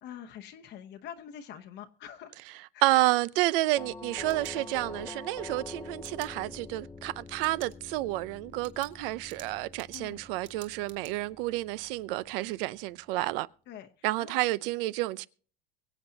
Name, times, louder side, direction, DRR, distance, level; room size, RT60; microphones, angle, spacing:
voice 1, 0.0-2.4 2.7-3.0 9.9-10.2 13.7-13.9 14.2-14.4, left 9 dB, 40° left, 1.0 m, -45 dB
voice 2, 2.8-13.5 14.0-15.3, right 18 dB, 70° right, 0.7 m, -30 dB
Doorbell, 3.8-12.6, left 3 dB, 10° left, 0.6 m, -46 dB
sound 1, 4.1-5.1 6.0-6.3 7.3-7.8 8.1-8.2 8.6-11.1, right 9 dB, 40° right, 1.8 m, -51 dB
23.5 x 8.0 x 2.8 m
supercardioid pair, 145°, 29 cm